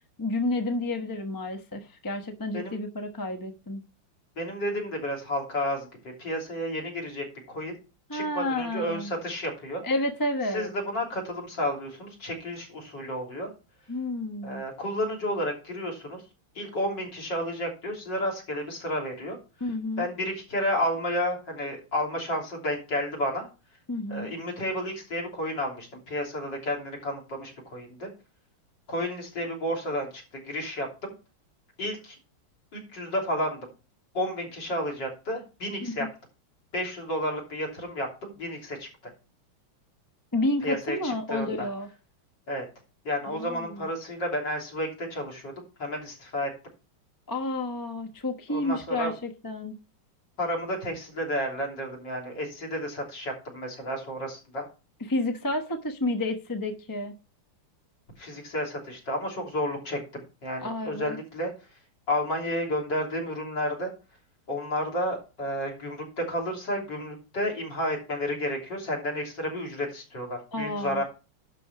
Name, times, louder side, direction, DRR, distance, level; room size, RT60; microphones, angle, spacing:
voice 1, 0.2-3.8 8.1-9.1 9.8-10.7 13.9-14.6 19.6-20.1 23.9-24.3 35.8-35.9 40.3-41.9 43.2-43.9 47.3-49.7 55.1-57.1 60.6-61.2 70.5-71.0, left 2 dB, 20° left, 5 dB, 0.5 m, -30 dB
voice 2, 4.4-5.9 6.2-7.8 8.1-9.8 10.5-13.5 14.4-16.2 16.6-19.4 20.0-23.5 24.1-28.1 28.9-30.9 31.8-32.2 32.7-33.7 34.1-36.1 36.7-38.9 40.6-41.7 42.5-42.7 43.0-45.5 45.8-46.5 48.5-49.1 50.4-54.7 58.2-61.5 62.1-63.9 64.5-71.0, equal, 55° left, 2 dB, 3.9 m, -31 dB
11.5 x 5.0 x 5.9 m, 0.32 s
omnidirectional pair, 2.4 m